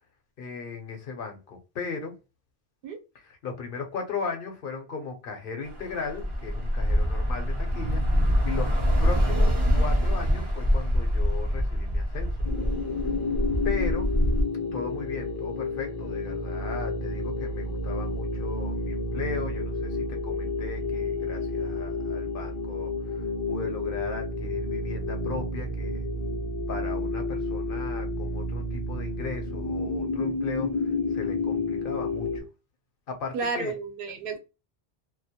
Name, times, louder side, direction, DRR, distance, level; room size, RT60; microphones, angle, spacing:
voice 1, 0.4-2.1 3.1-8.0 8.4-8.7 9.0-12.4 13.0-13.1 13.6-14.1 14.7-26.1 26.7-32.4 33.1-33.8, left 5 dB, 65° left, 0.8 m, -37 dB
Bus / Traffic noise roadway noise, 5.6-14.4, equal, 35° right, 0.5 m, -25 dB
sound 1, 12.4-32.4, left 2 dB, 35° left, 0.5 m, -30 dB
voice 2, 33.3-34.4, right 4 dB, 65° right, 0.8 m, -31 dB
2.2 x 2.1 x 2.7 m
omnidirectional pair, 1.0 m